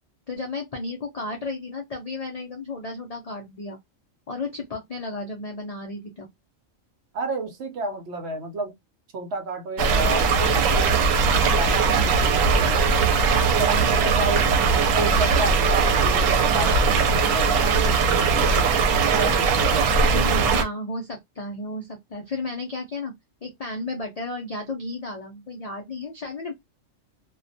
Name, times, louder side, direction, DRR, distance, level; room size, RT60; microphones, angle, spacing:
voice 1, 0.3-3.8 4.3-6.3 20.1-23.1 23.4-26.5, left 2 dB, 60° left, 0.4 m, -33 dB
voice 2, 7.1-8.7 9.1-11.1 11.5-18.7 19.1-20.2, right 2 dB, 65° right, 0.8 m, -32 dB
sound 1, 9.8-20.6, right 5 dB, 90° right, 1.0 m, -20 dB
2.3 x 2.1 x 2.6 m
omnidirectional pair, 1.3 m